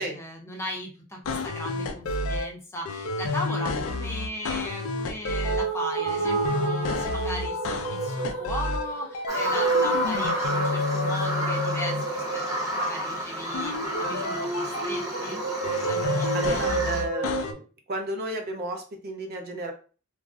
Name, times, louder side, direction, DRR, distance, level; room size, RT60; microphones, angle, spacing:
voice 1, 0.0-15.4 15.9-17.1, left 1 dB, 10° left, 0 dB, 0.6 m, -37 dB
sound 1, 1.2-2.5 2.9-5.7 6.1-8.8 9.1-12.0 13.5-15.0 15.6-17.5, left 3 dB, 65° left, 0.4 m, -30 dB
sound 2, 5.4-17.5, right 3 dB, 85° right, 1.1 m, -30 dB
Bird vocalization bird call bird song, 9.3-17.0, right 1 dB, 15° right, 0.8 m, -32 dB
voice 2, 16.3-17.6 17.9-19.7, right 1 dB, 45° right, 3 dB, 0.5 m, -32 dB
2.4 x 2.0 x 3.5 m, 0.37 s
head